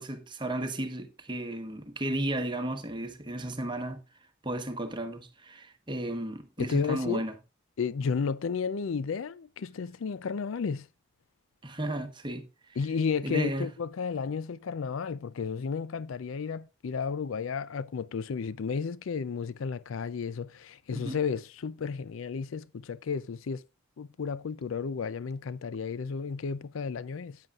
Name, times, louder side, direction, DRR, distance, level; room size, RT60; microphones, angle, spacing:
voice 1, 0.0-4.0 4.4-7.3 11.6-12.8 13.2-13.7 20.9-21.2, right 1 dB, 25° right, 1.2 m, -34 dB
voice 2, 6.6-7.3 7.8-10.9 12.8-23.6 24.0-27.4, left 5 dB, 75° left, 0.4 m, -33 dB
14.5 x 9.3 x 2.4 m
head